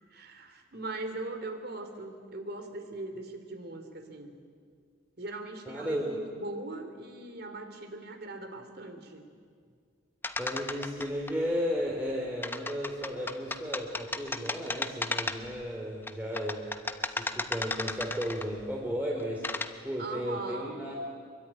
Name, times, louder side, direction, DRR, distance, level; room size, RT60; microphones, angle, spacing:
voice 1, 0.1-4.3 5.2-9.2 20.0-20.8, right 2 dB, 50° right, 7 dB, 3.1 m, -40 dB
voice 2, 5.7-6.2 10.4-16.6 17.0-19.5 19.8-20.9, equal, 10° right, -2 dB, 3.1 m, -34 dB
sound 1, 10.2-11.3 12.4-15.6 16.1-18.6 19.2-19.7, left 2 dB, 10° left, 1.0 m, -34 dB
26.0 x 22.5 x 10.0 m, 2.1 s
head